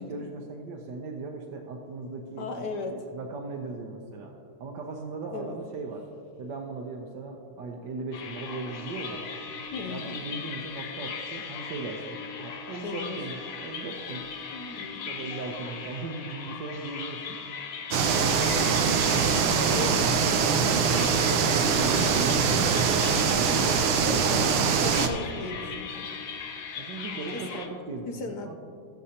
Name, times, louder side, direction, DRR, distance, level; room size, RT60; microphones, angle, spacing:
voice 1, 0.0-4.3 4.6-6.0 6.4-9.2 9.9-14.3 15.1-17.4 18.0-18.8 19.3-20.2 20.5-22.8 23.3-23.8 26.7-28.6, right 3 dB, 65° right, 0 dB, 1.3 m, -38 dB
voice 2, 2.4-3.0 5.3-5.6 9.7-10.2 12.8-13.2 14.5-15.1 19.7-20.3 24.0-26.1 27.3-27.6 28.1-28.6, left 3 dB, 65° left, 4 dB, 1.2 m, -37 dB
sound 1, 8.1-27.7, left 6 dB, 85° left, 1.8 m, -38 dB
sound 2, 17.9-25.1, right 6 dB, 80° right, 1.6 m, -23 dB
19.5 x 7.0 x 2.8 m, 2.5 s
omnidirectional pair, 2.3 m